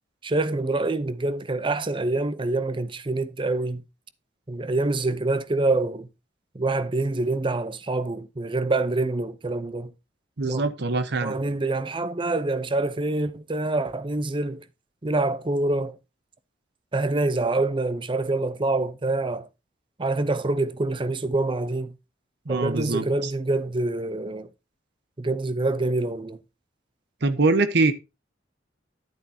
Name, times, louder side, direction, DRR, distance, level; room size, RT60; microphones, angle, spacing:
voice 1, 0.2-3.8 4.5-6.1 6.5-9.9 10.4-10.6 11.2-14.6 15.0-16.0 16.9-19.5 20.0-21.9 22.5-24.5 25.2-26.4, right 2 dB, 25° right, 0.7 m, -26 dB
voice 2, 10.4-11.4 22.5-23.3 27.2-27.9, right 3 dB, 60° right, 1.1 m, -23 dB
10.5 x 9.0 x 2.8 m
head